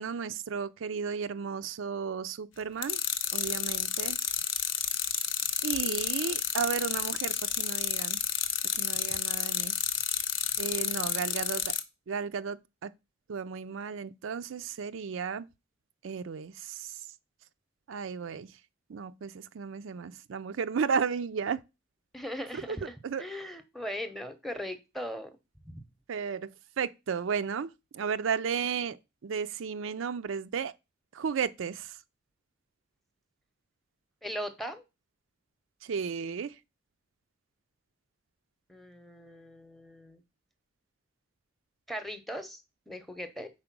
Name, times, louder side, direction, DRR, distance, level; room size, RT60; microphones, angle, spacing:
voice 1, 0.0-3.0 3.3-4.2 5.6-8.2 8.8-9.7 10.6-11.6 12.1-12.9 13.3-15.5 16.0-17.0 17.9-18.5 18.9-21.6 22.5-22.8 23.0-23.2 26.1-26.5 26.8-29.0 29.2-30.7 31.1-32.0 35.8-36.5, right 6 dB, 75° right, 0.4 m, -34 dB
sound 1, 2.8-11.8, left 9 dB, 70° left, 0.8 m, -31 dB
voice 2, 22.1-25.4 25.6-25.8 34.2-34.8 38.7-40.2 41.9-42.6 42.9-43.5, equal, ahead, 0.7 m, -39 dB
4.9 x 4.4 x 5.9 m
head